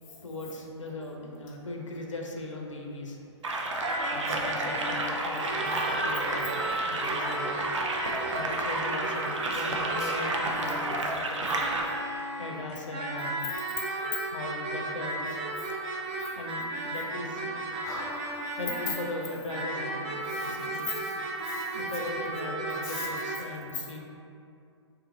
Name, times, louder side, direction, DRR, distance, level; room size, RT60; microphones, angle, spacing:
voice 1, 0.2-3.2 4.1-7.6 8.3-11.7 12.4-13.5 14.3-15.3 15.7-15.8 16.4-17.5 18.5-21.0 21.7-24.0, left 2 dB, 85° left, 0 dB, 0.5 m, -39 dB
sound 1, 3.4-11.8, right 2 dB, 80° right, 0.4 m, -31 dB
sound 2, 3.8-23.4, right 2 dB, 30° right, 0.6 m, -34 dB
voice 2, 17.7-18.5 20.9-21.0 21.5-21.6 22.8-23.1, left 4 dB, 20° left, -3 dB, 0.5 m, -39 dB
2.7 x 2.5 x 3.8 m, 2.5 s
figure-of-eight pair, 120°, 16 cm